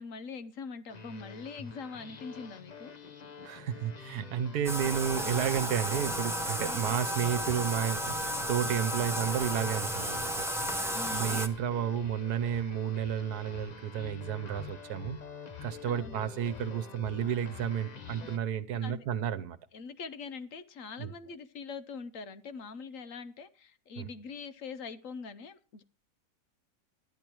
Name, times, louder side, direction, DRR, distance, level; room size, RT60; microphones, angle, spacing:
voice 1, 0.0-2.9 6.6-7.0 8.9-9.2 10.9-11.4 15.9-16.2 18.2-18.3 18.8-19.1 19.7-25.8, left 5 dB, 60° left, 1.1 m, -43 dB
sound 1, 0.9-18.4, left 5 dB, 35° left, 0.7 m, -46 dB
voice 2, 3.4-10.5 11.1-15.2 15.6-19.6 21.0-21.1 24.0-24.1, right 9 dB, 75° right, 1.4 m, -32 dB
Bathtub (filling or washing), 4.6-11.5, equal, 5° right, 0.6 m, -33 dB
13.0 x 10.5 x 4.5 m
omnidirectional pair, 1.7 m